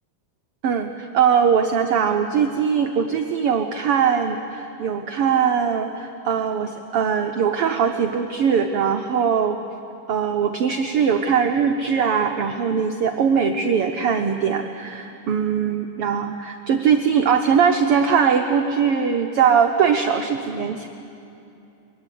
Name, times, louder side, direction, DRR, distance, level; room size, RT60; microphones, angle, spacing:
voice 1, 0.6-9.6 10.1-20.9, right 7 dB, 90° right, 5 dB, 1.2 m, -21 dB
22.5 x 17.0 x 9.9 m, 2.8 s
omnidirectional pair, 3.7 m